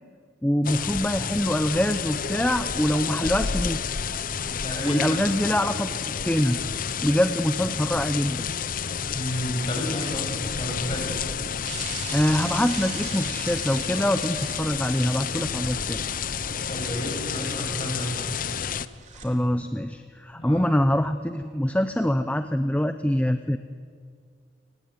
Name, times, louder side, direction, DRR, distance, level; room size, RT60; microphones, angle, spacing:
voice 1, 0.4-3.8 4.8-5.9 6.2-6.6 7.0-8.5 12.1-16.0 19.2-23.6, equal, 5° left, 9 dB, 0.6 m, -24 dB
sound 1, 0.6-18.9, left 7 dB, 45° left, 0.7 m, -30 dB
voice 2, 4.6-5.2 9.1-10.2 10.5-11.1 16.7-18.1 20.3-20.6, equal, 25° left, 0 dB, 7.2 m, -31 dB
Bicycle / Mechanisms, 11.6-19.3, right 4 dB, 35° right, 4.0 m, -41 dB
30.0 x 19.0 x 9.6 m, 2.2 s
head